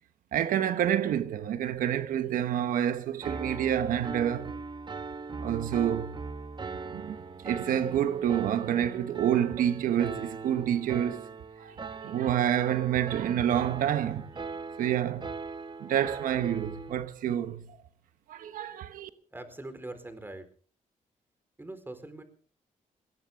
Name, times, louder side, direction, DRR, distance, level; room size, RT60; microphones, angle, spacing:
voice 1, 0.3-4.5 5.4-6.2 6.9-11.3 11.6-14.3 14.8-15.3 15.8-17.8 18.3-19.1, right 10 dB, 90° right, 1.1 m, -28 dB
Piano, 3.2-16.9, right 4 dB, 35° right, 1.0 m, -40 dB
voice 2, 19.3-20.5 21.6-22.2, right 2 dB, 15° right, 4.3 m, -42 dB
21.5 x 18.0 x 3.7 m
cardioid pair, 90°, 14 cm